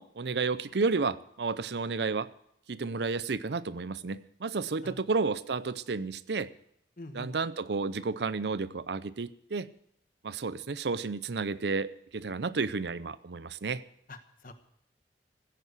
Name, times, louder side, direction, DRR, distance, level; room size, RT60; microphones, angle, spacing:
voice 1, 0.0-2.3 2.7-6.5 7.1-9.7 10.2-13.8, right 4 dB, 70° right, 16 dB, 0.6 m, -32 dB
voice 2, 7.0-7.3 14.1-14.5, left 2 dB, 50° left, 9 dB, 1.3 m, -45 dB
15.0 x 9.3 x 8.3 m, 0.73 s
head